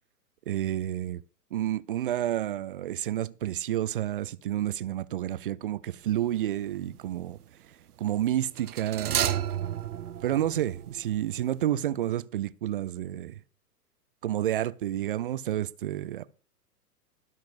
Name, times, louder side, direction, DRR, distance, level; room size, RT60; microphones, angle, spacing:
voice 1, 0.5-1.2 1.5-7.4 8.0-9.4 10.2-13.3 14.2-16.2, right 12 dB, 35° right, 0.4 m, -30 dB
sound 1, 6.1-6.4 8.6-11.4 11.6-11.7, right 10 dB, 70° right, 1.0 m, -32 dB
21.5 x 7.5 x 2.5 m
figure-of-eight pair, 110°, 48 cm